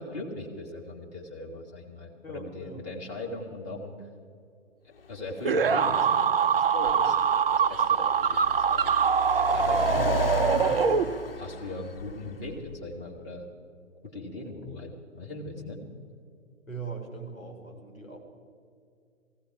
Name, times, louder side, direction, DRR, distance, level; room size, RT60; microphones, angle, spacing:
voice 1, 0.0-3.9 5.1-7.2 7.5-9.0 9.3-10.8 11.4-13.5 14.0-15.8, left 2 dB, 20° left, -2 dB, 1.9 m, -39 dB
voice 2, 2.2-2.8 9.9-10.1 16.7-18.2, right 5 dB, 80° left, 2 dB, 3.5 m, -40 dB
Car, 5.0-12.9, left 5 dB, 45° left, 0.5 m, -36 dB
sound 1, 5.4-11.5, right 6 dB, 45° right, 0.4 m, -24 dB
19.0 x 15.5 x 4.8 m, 2.3 s
figure-of-eight pair, 135°, 41 cm